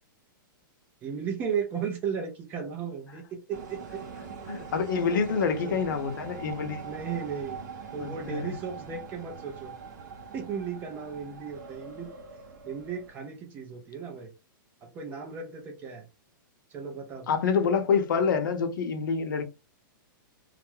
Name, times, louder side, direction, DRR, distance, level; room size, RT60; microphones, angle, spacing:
voice 1, 1.0-4.0 5.1-5.8 6.8-7.7 7.9-9.8 10.3-12.1 12.7-14.3 14.8-16.1 16.7-17.3, right 6 dB, 15° right, 0.4 m, -35 dB
sound 1, 3.5-13.1, right 5 dB, 55° right, 0.7 m, -43 dB
voice 2, 4.5-6.8 8.0-8.5 17.3-19.4, left 6 dB, 65° left, 0.7 m, -27 dB
2.3 x 2.0 x 2.9 m
hypercardioid pair, 170°, 12 cm